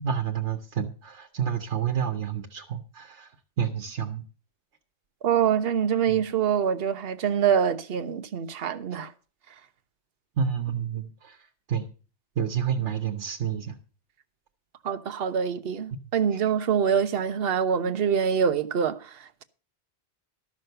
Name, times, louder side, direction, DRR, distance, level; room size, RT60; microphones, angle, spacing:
voice 1, 0.0-4.2 6.1-6.2 10.4-11.9 12.4-13.8, right 8 dB, 85° right, 1.3 m, -29 dB
voice 2, 5.2-9.1 14.8-19.4, right 7 dB, 60° right, 1.0 m, -25 dB
12.5 x 6.3 x 6.6 m
omnidirectional pair, 1.1 m